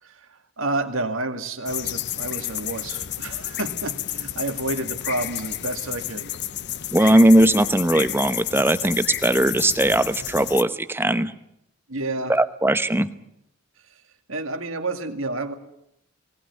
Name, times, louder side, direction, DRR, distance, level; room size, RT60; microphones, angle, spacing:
voice 1, 0.0-6.3 7.0-7.1 11.9-12.4 13.8-14.0 14.3-15.5, right 2 dB, 70° right, 6 dB, 2.3 m, -30 dB
sound 1, 1.6-10.6, left 12 dB, 55° left, 0.8 m, -31 dB
voice 2, 6.9-11.3 12.3-13.1, right 1 dB, 10° right, 11 dB, 1.0 m, -19 dB
20.0 x 18.5 x 9.6 m, 0.78 s
head